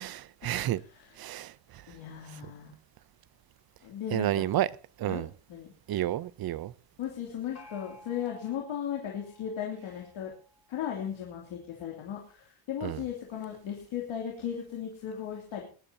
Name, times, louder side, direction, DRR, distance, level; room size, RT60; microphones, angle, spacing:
voice 1, 0.0-0.8 1.2-1.8 4.1-4.7 5.0-5.3 5.9-6.7 12.8-13.0, right 13 dB, 50° right, 0.6 m, -30 dB
voice 2, 1.9-2.8 3.8-4.5 5.1-5.2 5.5-5.7 7.0-10.3 10.7-15.6, left 9 dB, 70° left, 2.8 m, -36 dB
Gong, 7.6-11.1, left 1 dB, 30° left, 4.5 m, -55 dB
21.5 x 12.0 x 2.8 m
cardioid pair, 145°, 49 cm